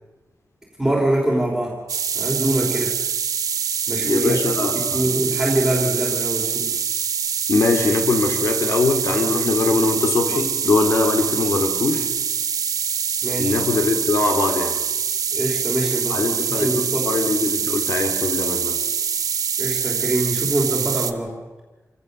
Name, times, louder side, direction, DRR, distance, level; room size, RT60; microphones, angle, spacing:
voice 1, 0.8-1.8 2.1-3.0 3.9-6.8 13.2-13.6 15.3-17.1 19.6-21.3, right 1 dB, 5° right, -2 dB, 3.2 m, -24 dB
sound 1, 1.9-21.1, right 7 dB, 90° right, 1.0 m, -24 dB
voice 2, 4.0-5.1 7.5-12.1 13.4-14.8 16.1-18.8, left 3 dB, 50° left, 4 dB, 2.5 m, -22 dB
27.0 x 16.5 x 6.5 m, 1.2 s
wide cardioid pair, 160°, 6 cm